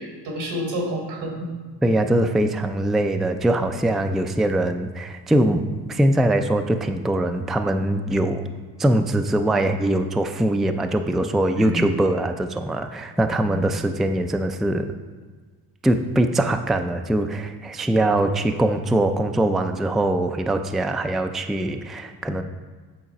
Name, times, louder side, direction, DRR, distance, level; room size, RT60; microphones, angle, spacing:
voice 1, 0.0-1.5 11.5-11.9, equal, 85° right, 1 dB, 1.5 m, -29 dB
voice 2, 1.8-8.5 8.8-14.9 15.8-22.4, right 1 dB, ahead, 7 dB, 0.3 m, -22 dB
7.8 x 3.9 x 4.0 m, 1.4 s
supercardioid pair, 60°, 40 cm